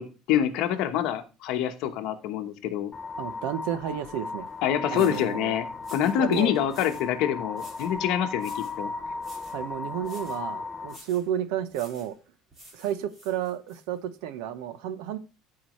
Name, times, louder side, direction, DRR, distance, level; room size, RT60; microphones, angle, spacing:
voice 1, 0.0-2.9 4.6-5.7 5.9-8.9, left 10 dB, 55° left, 1.1 m, -26 dB
sound 1, 2.9-11.0, left 3 dB, 15° left, 0.6 m, -36 dB
voice 2, 3.2-4.5 4.9-5.6 6.2-6.5 9.5-12.2 12.7-15.2, right 10 dB, 85° right, 0.9 m, -31 dB
sound 2, 4.5-4.6 4.9-5.3 5.8-7.1 7.5-8.0 8.4-8.8 9.2-9.6 10.0-10.4 10.9-11.3 11.7-12.1 12.5-13.8, right 1 dB, 20° right, 2.2 m, -51 dB
14.0 x 4.9 x 3.1 m
cardioid pair, 180°, 0 cm